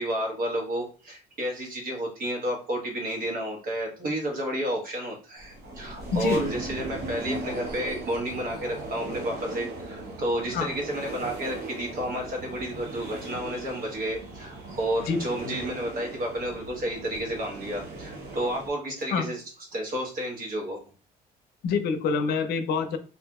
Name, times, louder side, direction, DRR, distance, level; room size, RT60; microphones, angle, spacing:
voice 1, 0.0-19.4 19.7-20.8, equal, 55° right, 0 dB, 1.1 m, -31 dB
sound 1, 5.4-18.7, right 2 dB, 80° right, 1.0 m, -38 dB
voice 2, 6.1-6.5 10.5-10.7 15.0-15.5 19.1-19.2 21.6-23.0, left 5 dB, 70° left, 8 dB, 0.5 m, -27 dB
2.7 x 2.4 x 2.3 m, 0.36 s
cardioid pair, 110°, 17 cm